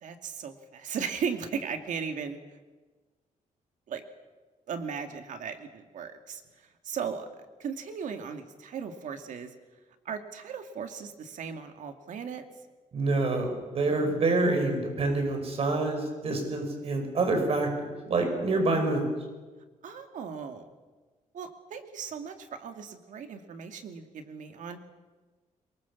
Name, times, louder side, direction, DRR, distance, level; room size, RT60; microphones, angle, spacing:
voice 1, 0.0-2.4 3.9-4.0 4.7-6.4 6.8-7.3 7.6-9.5 10.1-12.4 19.8-20.7 21.3-24.8, right 6 dB, 70° right, 6 dB, 2.4 m, -37 dB
voice 2, 12.9-19.1, right 2 dB, 45° right, 4 dB, 5.2 m, -27 dB
24.0 x 22.0 x 7.3 m, 1.3 s
cardioid pair, 145°, 13 cm